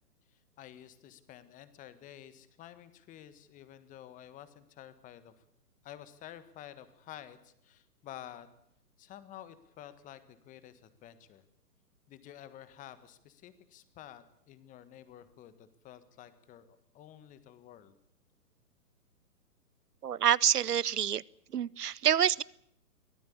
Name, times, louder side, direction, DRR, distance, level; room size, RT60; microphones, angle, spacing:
voice 1, 0.3-5.3 5.8-8.5 9.0-11.4 12.1-18.0, left 11 dB, 15° left, 13 dB, 1.5 m, -51 dB
voice 2, 20.0-21.2 21.5-22.4, right 9 dB, 75° right, 25 dB, 0.8 m, -27 dB
23.5 x 16.5 x 8.6 m, 0.74 s
figure-of-eight pair, 135°, 47 cm